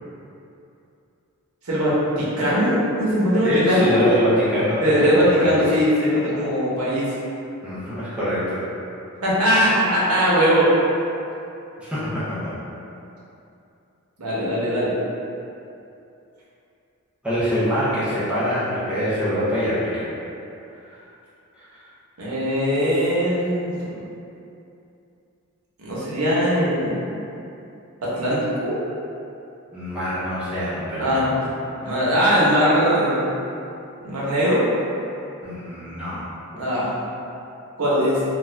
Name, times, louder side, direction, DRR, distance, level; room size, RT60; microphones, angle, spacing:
voice 1, 1.7-3.9 4.8-7.1 9.2-10.7 14.2-14.9 22.2-23.9 25.8-27.1 28.0-28.8 31.0-31.2 31.8-33.3 34.0-34.6 36.6-36.9 37.8-38.2, equal, 90° right, -8 dB, 0.8 m, -20 dB
voice 2, 3.4-5.6 7.6-8.6 11.8-12.6 17.2-20.1 21.6-21.8 29.7-31.3 35.4-36.3, equal, 5° right, -12 dB, 0.5 m, -24 dB
2.4 x 2.3 x 3.1 m, 2.7 s
head